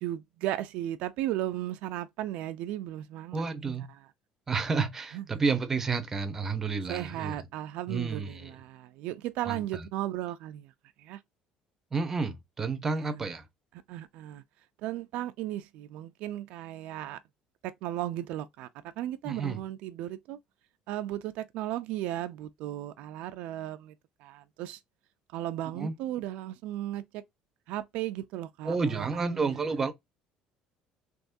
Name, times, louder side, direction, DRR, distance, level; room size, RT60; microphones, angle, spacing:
voice 1, 0.0-3.4 5.1-5.4 6.9-10.7 11.0-11.2 12.8-13.2 13.9-14.4 14.8-17.2 17.6-20.4 20.9-23.9 24.2-24.8 25.3-27.2 27.7-29.9, right 13 dB, 65° right, 0.4 m, -36 dB
voice 2, 3.3-3.9 4.5-7.4 7.9-8.5 9.5-9.9 11.9-13.4 19.2-19.6 25.7-25.9 28.6-29.9, right 4 dB, 15° right, 0.5 m, -30 dB
3.5 x 3.0 x 2.5 m
cardioid pair, 180°, 2 cm